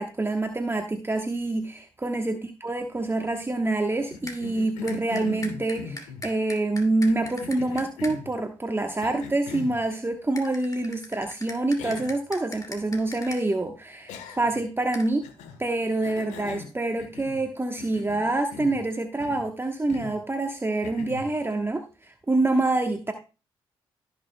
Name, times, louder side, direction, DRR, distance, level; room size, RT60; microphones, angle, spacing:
voice 1, 0.0-15.2 15.6-23.1, right 2 dB, 20° right, 5 dB, 1.1 m, -26 dB
Cough, 4.1-6.3 7.1-8.3 9.0-9.8 11.2-11.3 11.8-12.2 12.5-12.6 14.1-14.6 15.2-15.6 16.0-17.5 17.8-18.8 19.2-19.5 19.9-20.2 20.8-21.3, left 5 dB, 80° left, 1.2 m, -40 dB
sound 1, 4.3-4.4 4.9-8.2 10.4-13.4 14.9-15.1, left 2 dB, 30° left, 2.4 m, -40 dB
17.0 x 6.1 x 2.2 m, 0.32 s
hypercardioid pair, 40°, 12 cm